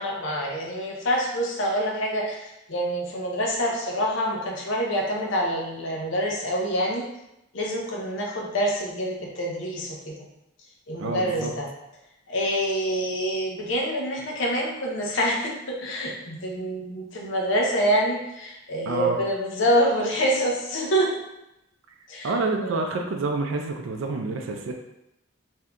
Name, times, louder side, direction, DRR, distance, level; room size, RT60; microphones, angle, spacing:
voice 1, 0.0-7.1 7.5-10.3 10.9-11.7 12.3-21.2 22.1-22.9, equal, 65° left, -1 dB, 0.6 m, -26 dB
voice 2, 11.0-11.5 18.9-19.2 22.2-24.7, right 3 dB, 75° right, 3 dB, 0.4 m, -28 dB
2.6 x 2.2 x 3.6 m, 0.87 s
head